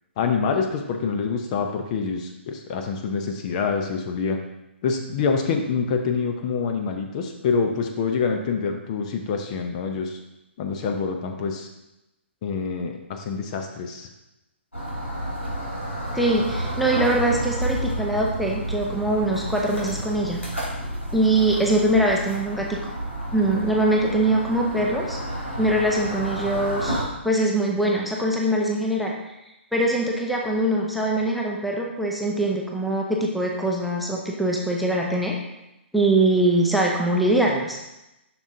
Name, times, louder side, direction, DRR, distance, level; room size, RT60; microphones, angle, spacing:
voice 1, 0.2-4.4 4.8-10.2 10.6-11.7 12.4-14.1, left 5 dB, 35° left, 4 dB, 0.7 m, -26 dB
sound 1, 14.7-27.1, right 1 dB, 90° left, 2.5 m, -30 dB
voice 2, 16.1-20.4 21.1-22.8 23.3-25.2 25.6-29.1 29.7-35.3 35.9-37.8, right 1 dB, ahead, -2 dB, 0.7 m, -22 dB
7.1 x 6.0 x 2.7 m, 0.93 s
figure-of-eight pair, 125°, 7 cm